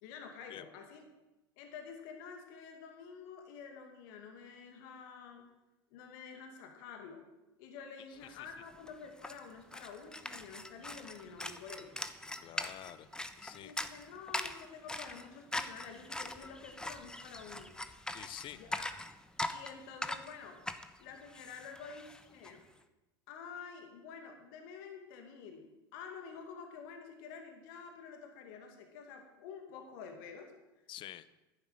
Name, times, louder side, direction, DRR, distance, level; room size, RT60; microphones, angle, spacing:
voice 1, 0.0-1.0 1.6-5.4 5.9-7.3 7.6-11.9 13.6-17.7 18.5-18.9 19.5-20.6 21.0-22.6 23.3-30.5, left 6 dB, 60° left, 4 dB, 2.3 m, -49 dB
sound 1, 8.4-8.5 8.7-22.5, left 1 dB, 5° left, 1.0 m, -42 dB
voice 2, 12.4-13.1 13.4-13.7 18.1-18.6 30.9-31.3, left 12 dB, 40° left, 15 dB, 0.9 m, -47 dB
11.0 x 9.8 x 7.8 m, 1.0 s
hypercardioid pair, 90°, 12 cm